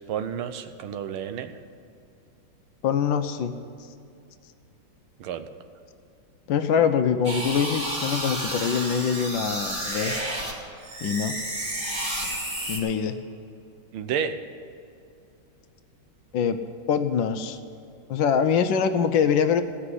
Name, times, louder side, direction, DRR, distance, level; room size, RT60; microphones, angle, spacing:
voice 1, 0.1-1.5 5.2-5.4 13.9-14.4, right 8 dB, 85° right, 10 dB, 1.6 m, -30 dB
voice 2, 2.8-3.5 6.5-10.1 11.0-11.4 12.7-13.2 16.3-16.6 16.9-17.6 18.1-19.6, left 7 dB, 75° left, 9 dB, 1.3 m, -24 dB
sound 1, 7.2-10.5 10.8-12.8, right 1 dB, 25° right, 2.5 m, -31 dB
15.5 x 5.9 x 9.8 m, 2.5 s
omnidirectional pair, 2.3 m